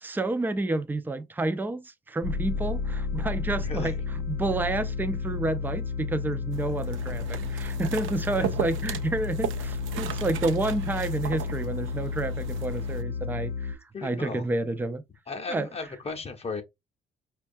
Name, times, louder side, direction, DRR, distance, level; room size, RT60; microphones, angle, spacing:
voice 1, 0.0-3.9 4.3-15.0 15.5-15.7, right 2 dB, 10° right, 0.4 m, -30 dB
sound 1, 2.2-13.7, left 5 dB, 85° left, 0.7 m, -32 dB
voice 2, 3.6-3.9 8.3-8.5 13.9-14.4 15.3-16.6, left 4 dB, 30° left, 0.8 m, -35 dB
sound 2, 6.5-13.0, right 8 dB, 80° right, 0.5 m, -36 dB
4.6 x 2.3 x 2.6 m
cardioid pair, 90°, 20 cm